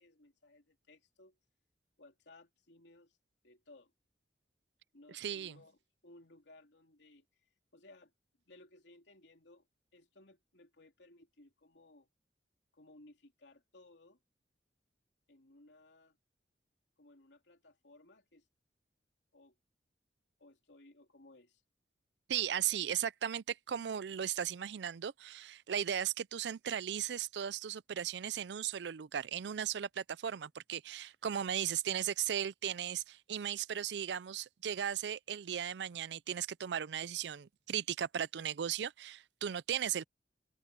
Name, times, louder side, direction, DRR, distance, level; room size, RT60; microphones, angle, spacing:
voice 1, 0.0-1.4 2.0-3.2 3.4-3.9 4.9-5.8 6.0-8.1 8.5-9.7 9.9-12.1 12.7-14.2 15.3-16.2 17.0-18.5 19.3-19.5 20.4-21.6, left 2 dB, 90° left, 3.2 m, -60 dB
voice 2, 5.1-5.5 22.3-40.0, right 9 dB, 80° right, 0.4 m, -36 dB
open air
head